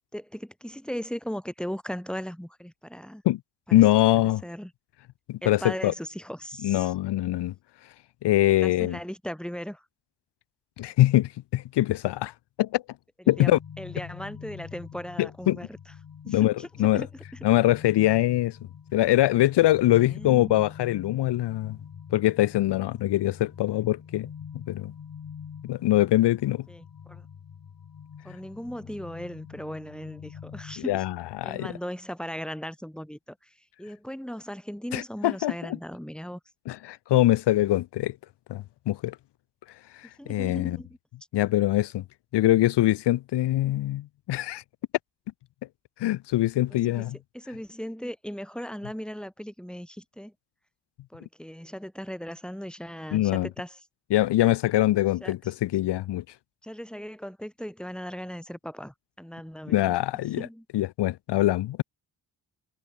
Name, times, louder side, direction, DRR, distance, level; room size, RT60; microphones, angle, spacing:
voice 1, 0.1-3.2 3.7-3.8 4.4-4.7 5.4-6.9 8.6-9.8 13.2-15.8 16.2-17.2 19.9-20.7 26.7-27.3 28.2-31.0 31.4-36.4 40.2-41.0 46.7-47.1 47.3-50.3 51.1-53.8 55.2-55.5 56.6-60.0 60.4-60.6, equal, ahead, 6.5 m, -38 dB
voice 2, 3.7-4.4 5.3-5.9 6.6-7.5 8.2-9.0 10.8-12.8 13.3-13.6 15.2-15.6 16.3-17.0 17.4-18.6 18.9-21.8 22.1-24.3 24.5-24.9 25.6-26.7 30.9-31.7 34.9-35.8 36.7-38.2 38.5-39.2 39.9-40.8 41.3-42.0 42.3-44.6 46.0-47.2 53.1-53.5 54.1-56.2 59.7-60.5 60.7-61.8, left 15 dB, 75° left, 0.9 m, -23 dB
sound 1, 13.3-30.8, left 7 dB, 55° left, 4.1 m, -45 dB
supercardioid pair, 60°, 41 cm